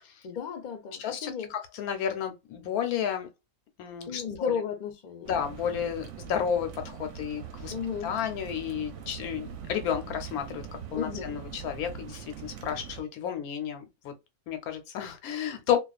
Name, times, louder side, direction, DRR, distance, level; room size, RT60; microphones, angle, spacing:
voice 1, 0.2-1.5 4.1-5.4 7.7-8.1 10.9-11.4, left 7 dB, 50° left, 0.5 m, -34 dB
voice 2, 1.0-3.3 3.8-4.5 5.3-7.7 8.0-10.6 10.9-14.1 14.5-15.8, left 8 dB, 90° left, 1.1 m, -32 dB
sound 1, 5.3-13.0, right 7 dB, 65° right, 0.8 m, -42 dB
2.3 x 2.3 x 2.3 m
omnidirectional pair, 1.5 m